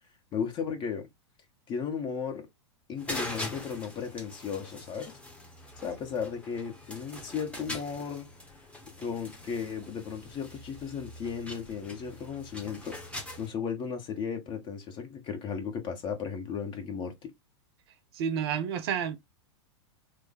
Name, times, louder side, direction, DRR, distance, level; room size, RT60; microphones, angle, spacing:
voice 1, 0.3-1.1 1.7-2.5 2.9-5.2 5.8-8.3 9.0-13.0 13.4-17.3, left 6 dB, 35° left, 1.3 m, -35 dB
sound 1, 3.0-13.5, left 1 dB, 10° left, 1.1 m, -43 dB
voice 2, 18.1-19.2, right 8 dB, 60° right, 0.7 m, -30 dB
3.2 x 2.2 x 3.9 m
hypercardioid pair, 105°, 15 cm